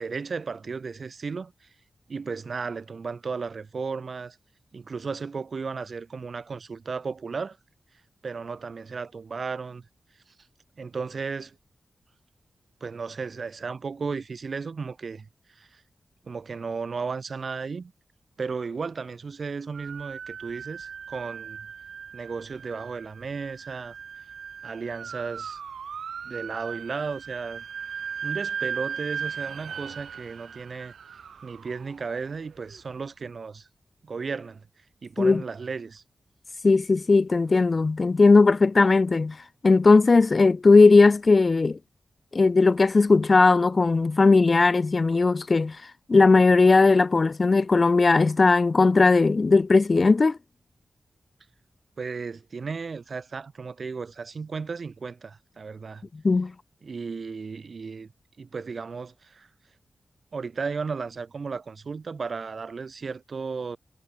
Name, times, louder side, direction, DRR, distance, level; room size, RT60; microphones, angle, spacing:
voice 1, 0.0-1.5 2.1-4.4 4.7-7.6 8.2-9.8 10.8-11.5 12.8-15.2 15.6-15.8 16.3-17.9 18.4-21.7 22.1-23.9 24.6-25.6 26.2-27.6 28.2-30.9 31.4-33.7 34.0-34.6 35.0-36.0 52.0-56.1 56.8-58.1 58.4-59.5 60.3-63.8, right 5 dB, 65° right, 4.9 m, -34 dB
sound 1, 19.7-32.8, right 7 dB, 85° right, 6.7 m, -38 dB
voice 2, 36.6-39.4 39.6-41.8 42.3-45.8 46.1-50.4 56.2-56.5, left 3 dB, 50° left, 2.7 m, -18 dB
cardioid pair, 40°, 0 cm